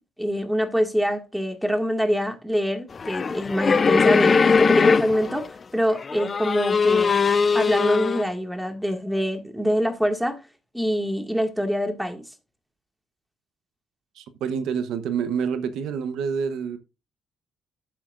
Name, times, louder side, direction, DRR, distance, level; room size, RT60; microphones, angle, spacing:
voice 1, 0.2-7.2 7.5-10.4 10.7-12.2, equal, ahead, 2.0 m, -25 dB
sound 1, 3.0-5.5 6.0-8.2, left 5 dB, 40° left, 0.5 m, -20 dB
voice 2, 14.2-16.8, right 6 dB, 85° right, 1.0 m, -27 dB
11.5 x 8.4 x 2.5 m
cardioid pair, 90°, 0 cm